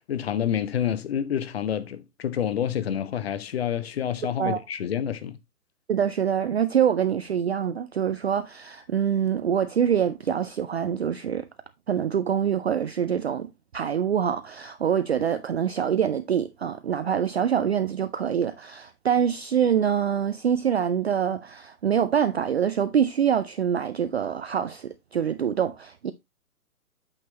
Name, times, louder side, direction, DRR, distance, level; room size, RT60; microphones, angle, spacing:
voice 1, 0.1-5.4, left 9 dB, 40° left, 0.9 m, -28 dB
voice 2, 5.9-11.5 11.9-26.1, right 8 dB, 45° right, 0.5 m, -25 dB
8.8 x 6.0 x 2.9 m
figure-of-eight pair, 130°, 46 cm